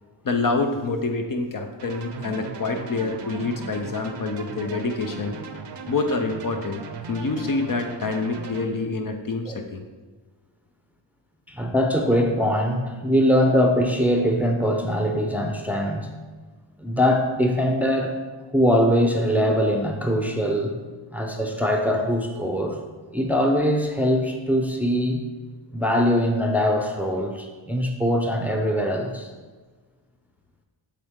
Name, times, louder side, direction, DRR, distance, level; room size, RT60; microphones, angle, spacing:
voice 1, 0.2-5.4 5.9-9.8, left 3 dB, 45° left, 4 dB, 0.6 m, -27 dB
sound 1, 1.8-8.7, right 5 dB, 60° right, 0.7 m, -37 dB
voice 2, 11.5-16.1 16.8-18.1 18.5-20.8 21.1-22.8 23.1-25.2 25.7-29.3, equal, 5° right, 2 dB, 0.6 m, -22 dB
8.1 x 3.6 x 3.7 m, 1.4 s
wide cardioid pair, 80°, 47 cm